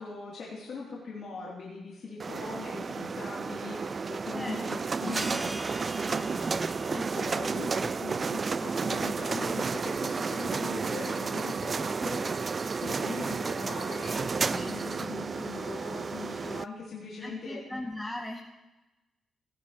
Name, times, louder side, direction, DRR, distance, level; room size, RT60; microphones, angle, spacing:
voice 1, 0.0-5.5 6.9-12.6 12.8-17.6, left 3 dB, 60° left, -5 dB, 3.4 m, -40 dB
sound 1, 2.2-16.6, right 5 dB, 45° right, 0.4 m, -32 dB
voice 2, 4.3-5.4 5.8-7.2 14.5-14.7 17.2-18.4, left 1 dB, 10° left, -3 dB, 2.4 m, -40 dB
sound 2, 5.1-10.2, right 1 dB, 20° right, 1.4 m, -44 dB
17.5 x 15.0 x 3.2 m, 1.0 s
hypercardioid pair, 40°, 0 cm